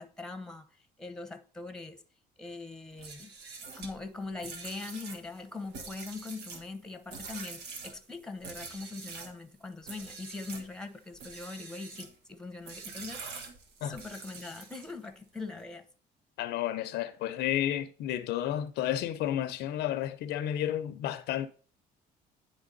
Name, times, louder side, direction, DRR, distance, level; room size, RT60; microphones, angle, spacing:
voice 1, 0.0-2.0 2.4-3.3 3.8-13.3 13.8-15.9, left 3 dB, 5° left, 0.9 m, -42 dB
sound 1, 2.9-9.4 9.8-10.7 11.1-12.2 12.7-15.1, right 4 dB, 85° right, 1.3 m, -45 dB
voice 2, 16.4-21.5, left 11 dB, 80° left, 0.6 m, -31 dB
9.8 x 3.4 x 3.9 m
cardioid pair, 110°, 17 cm